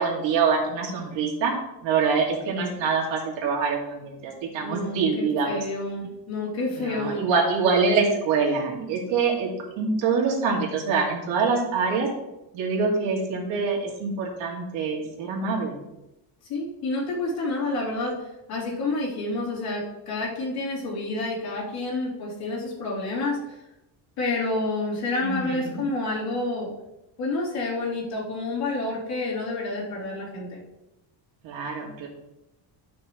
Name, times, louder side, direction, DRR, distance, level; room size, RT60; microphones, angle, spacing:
voice 1, 0.0-1.5 1.8-5.6 6.8-12.1 12.5-15.8 25.2-25.8 31.4-32.1, right 5 dB, 90° right, -1 dB, 2.5 m, -25 dB
voice 2, 4.6-7.3 16.5-18.2 18.5-23.6 24.2-26.7 27.2-30.6, left 2 dB, 55° left, -8 dB, 3.5 m, -29 dB
12.0 x 6.0 x 3.2 m, 0.92 s
cardioid pair, 160°, 44 cm